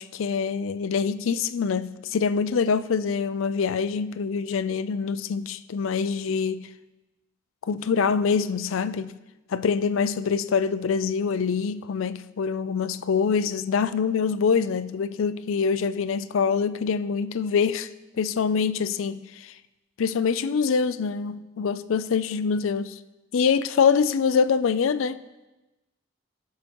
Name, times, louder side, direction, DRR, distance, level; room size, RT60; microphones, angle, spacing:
voice 1, 0.0-6.7 7.6-9.1 9.5-17.9 18.2-19.5 20.0-23.0 23.3-25.2, left 6 dB, 75° left, 14 dB, 0.4 m, -25 dB
18.5 x 6.6 x 3.0 m, 1.0 s
head